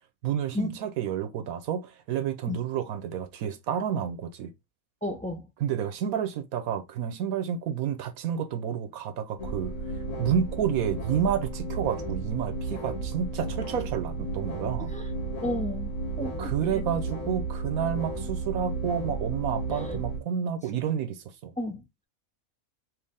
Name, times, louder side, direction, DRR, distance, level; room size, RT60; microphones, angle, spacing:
voice 1, 0.2-4.5 5.6-9.7 10.2-14.9 16.2-21.5, right 8 dB, 85° right, 1.2 m, -30 dB
voice 2, 5.0-5.5 14.9-15.1 15.4-15.9 16.2-16.8 19.7-20.0 21.6-22.0, left 2 dB, 10° left, 0.3 m, -33 dB
sound 1, 9.4-20.2, right 3 dB, 60° left, 2.0 m, -33 dB
4.7 x 2.6 x 3.5 m
omnidirectional pair, 1.5 m